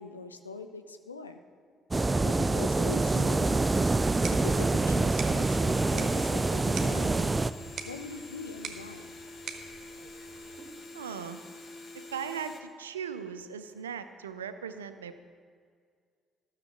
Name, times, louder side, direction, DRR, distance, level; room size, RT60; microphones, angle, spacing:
voice 1, 0.0-1.4 2.2-3.7 4.4-7.4 7.8-9.1, left 4 dB, 90° left, 8 dB, 0.5 m, -42 dB
sound 1, 1.9-7.5, right 3 dB, 20° right, 0.4 m, -26 dB
sound 2, 3.9-10.9, right 5 dB, 55° right, 1.1 m, -45 dB
sound 3, 5.4-12.6, left 2 dB, 45° left, 1.1 m, -46 dB
voice 2, 10.9-11.4 11.9-15.2, right 7 dB, 85° right, 11 dB, 0.5 m, -38 dB
13.0 x 6.6 x 6.7 m, 2.1 s
figure-of-eight pair, 50°, 0 cm